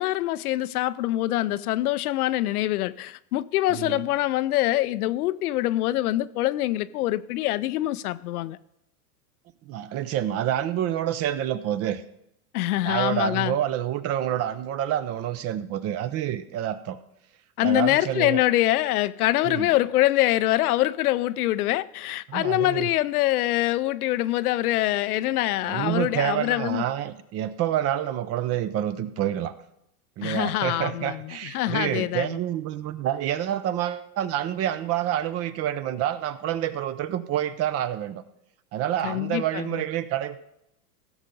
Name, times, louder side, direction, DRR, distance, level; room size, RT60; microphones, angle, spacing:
voice 1, 0.0-8.6 12.5-13.5 17.6-26.8 30.2-32.4 39.0-39.8, left 15 dB, 75° left, 0.7 m, -24 dB
voice 2, 3.7-4.0 9.7-12.0 12.8-17.0 17.6-18.4 19.4-19.7 22.3-22.9 25.6-29.5 30.2-38.2 38.7-40.4, right 11 dB, 35° right, 0.7 m, -28 dB
16.0 x 6.5 x 5.3 m
hypercardioid pair, 120°, 45 cm